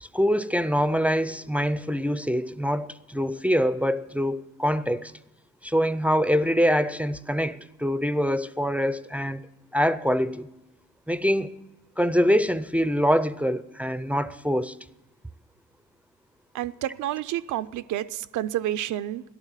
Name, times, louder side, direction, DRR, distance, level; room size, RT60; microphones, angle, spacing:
voice 1, 0.0-5.1 5.6-9.4 9.7-10.5 11.1-11.6 12.0-14.8, equal, 5° right, 0.4 m, -24 dB
voice 2, 16.5-19.2, right 13 dB, 80° right, 0.6 m, -29 dB
14.0 x 11.5 x 7.3 m
cardioid pair, 90°, 30 cm